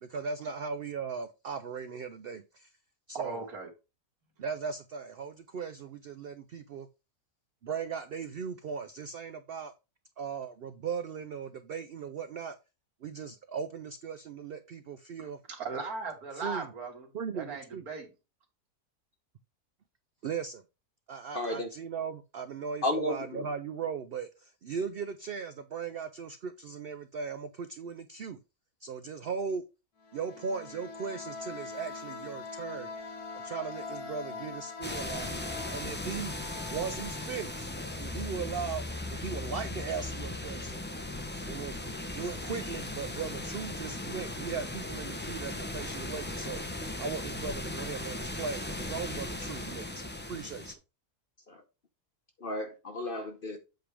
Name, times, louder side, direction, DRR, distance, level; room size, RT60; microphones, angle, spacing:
voice 1, 0.0-2.7 3.1-3.4 4.4-6.9 7.6-9.7 10.2-12.6 13.0-15.4 16.3-16.7 17.1-17.9 20.2-20.6 21.1-28.4 28.8-29.6 30.1-32.9 33.3-35.3 35.7-36.3 36.7-37.7 38.0-38.8 39.1-40.8 41.5-50.0 50.3-50.8, right 6 dB, 85° right, 0.5 m, -38 dB
voice 2, 3.2-3.7 15.5-17.1 17.3-18.1, right 4 dB, 70° right, 2.3 m, -37 dB
voice 3, 21.3-21.7 22.8-23.5 51.5-51.6 52.4-53.6, left 1 dB, 45° left, 0.8 m, -33 dB
sound 1, 30.0-38.6, left 4 dB, 75° left, 1.7 m, -43 dB
sound 2, 34.8-50.7, left 2 dB, 15° left, 0.3 m, -37 dB
8.1 x 3.4 x 4.9 m
omnidirectional pair, 1.6 m